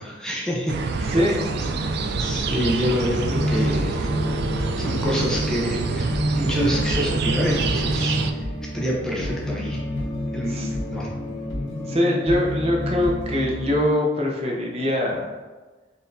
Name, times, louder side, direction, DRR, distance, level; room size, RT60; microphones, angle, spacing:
voice 1, 0.0-1.1 2.2-4.1 4.8-8.5 8.7-9.8 10.3-11.1, equal, 5° left, -5 dB, 0.6 m, -27 dB
sound 1, 0.7-8.3, right 3 dB, 60° right, 0.3 m, -26 dB
voice 2, 1.1-1.6 10.5-10.7 11.9-15.4, left 1 dB, 35° right, -2 dB, 0.7 m, -23 dB
sound 2, 3.3-13.8, left 1 dB, 70° left, 0.8 m, -29 dB
4.2 x 3.4 x 2.6 m, 1.3 s
head